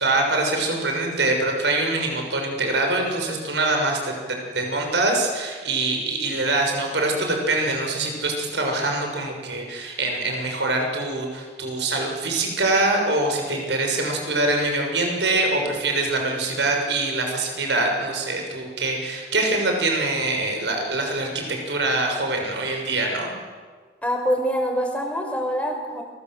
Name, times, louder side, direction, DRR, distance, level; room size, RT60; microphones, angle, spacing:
voice 1, 0.0-23.3, right 2 dB, 85° right, 2 dB, 6.7 m, -24 dB
voice 2, 24.0-26.0, equal, 10° left, 2 dB, 5.1 m, -25 dB
29.0 x 23.0 x 8.0 m, 1.5 s
head